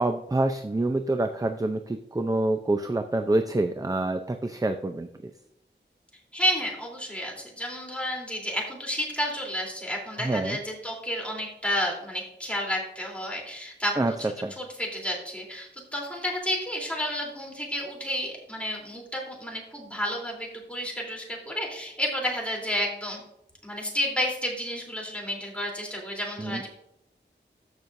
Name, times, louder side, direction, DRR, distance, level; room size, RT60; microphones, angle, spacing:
voice 1, 0.0-5.1 10.2-10.6 14.0-14.1 14.4-14.5 26.4-26.6, right 2 dB, 20° right, 7 dB, 0.5 m, -26 dB
voice 2, 6.3-23.2 23.6-26.7, equal, 5° left, -2 dB, 3.4 m, -31 dB
14.0 x 6.2 x 2.6 m, 0.78 s
wide cardioid pair, 80°, 19 cm